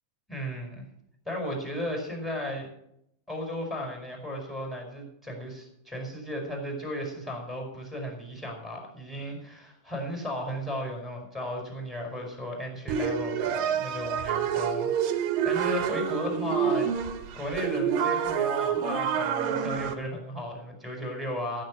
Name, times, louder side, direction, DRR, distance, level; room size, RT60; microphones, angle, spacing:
voice 1, 0.3-0.8 1.2-2.7 3.3-16.9 17.3-21.6, left 1 dB, ahead, 0 dB, 4.5 m, -35 dB
sound 1, 12.9-19.9, right 8 dB, 65° right, 2.4 m, -28 dB
15.0 x 9.5 x 6.5 m, 0.76 s
omnidirectional pair, 5.2 m